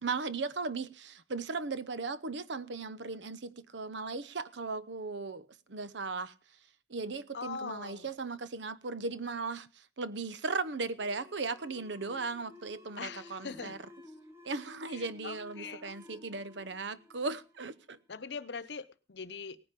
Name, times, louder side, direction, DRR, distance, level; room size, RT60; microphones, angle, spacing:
voice 1, 0.0-6.3 6.9-9.7 10.0-13.8 14.4-18.0, right 4 dB, 90° right, 0.9 m, -37 dB
voice 2, 7.3-8.1 13.0-13.8 14.9-15.8 18.1-19.6, left 5 dB, 80° left, 0.8 m, -42 dB
sound 1, 10.9-18.2, left 2 dB, 15° right, 2.1 m, -54 dB
18.0 x 9.9 x 5.2 m
head